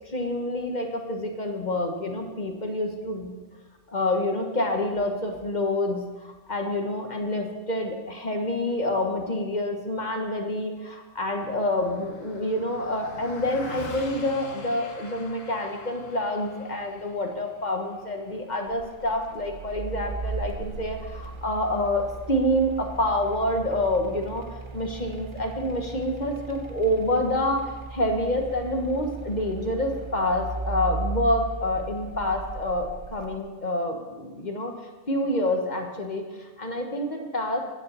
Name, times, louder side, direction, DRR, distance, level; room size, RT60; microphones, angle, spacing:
voice 1, 0.0-3.4 3.9-24.4 24.7-34.7 35.1-37.6, left 1 dB, 35° left, 3 dB, 1.2 m, -27 dB
Car passing by, 11.3-20.9, left 3 dB, 65° left, 1.5 m, -45 dB
sound 1, 18.7-33.4, right 4 dB, 35° right, 0.5 m, -37 dB
10.0 x 6.9 x 6.7 m, 1.2 s
omnidirectional pair, 1.5 m